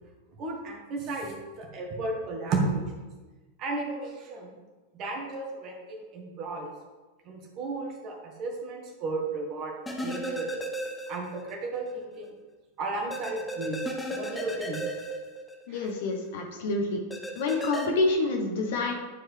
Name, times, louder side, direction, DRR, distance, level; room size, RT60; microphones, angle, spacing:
voice 1, 0.4-2.8 3.6-4.5 4.9-6.7 7.3-9.7 10.0-10.6 11.1-12.3 12.8-13.8 14.1-14.8 15.7-15.8, right 3 dB, 35° right, 0 dB, 1.6 m, -33 dB
sound 1, 9.9-11.5 11.9-12.0 13.1-15.9 17.1-17.9, right 1 dB, 5° left, 0.9 m, -35 dB
voice 2, 15.7-17.0 17.4-18.9, left 3 dB, 55° left, 2 dB, 1.0 m, -27 dB
11.0 x 4.6 x 3.3 m, 1.2 s
figure-of-eight pair, 90°, 0 cm